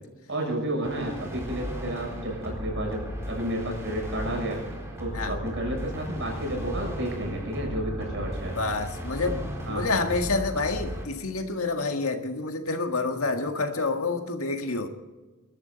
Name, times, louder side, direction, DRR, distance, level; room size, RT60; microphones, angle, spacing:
voice 1, 0.3-4.6 5.0-8.6 9.2-9.9, right 1 dB, 60° right, 6.8 m, -31 dB
sound 1, 0.8-11.0, equal, 15° right, 4.2 m, -36 dB
voice 2, 8.6-14.9, left 3 dB, 80° left, 1.8 m, -28 dB
23.0 x 12.5 x 4.0 m
head